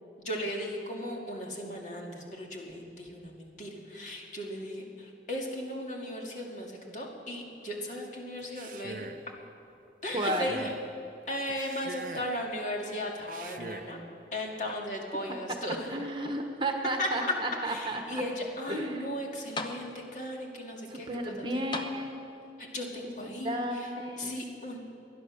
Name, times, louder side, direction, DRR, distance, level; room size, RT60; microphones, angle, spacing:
voice 1, 0.2-9.1 10.0-10.7 11.3-14.0 14.3-16.0 17.0-17.1 17.6-21.6 22.6-24.8, left 1 dB, 45° left, -1 dB, 2.3 m, -37 dB
Male speech man speaking, 8.4-9.3 10.1-10.9 11.5-12.4 13.2-14.0, right 4 dB, 50° right, 0.6 m, -44 dB
voice 2, 10.1-10.4 15.9-18.0 18.7-19.1 20.9-22.2 22.9-24.3, right 1 dB, 25° right, 3 dB, 1.2 m, -33 dB
sound 1, 14.6-15.3 15.7-16.7 17.4-17.5 19.1-19.2 19.6-20.3 21.7-22.6 23.6-23.7, left 2 dB, 25° left, 0.8 m, -41 dB
21.0 x 10.5 x 6.5 m, 2.9 s
head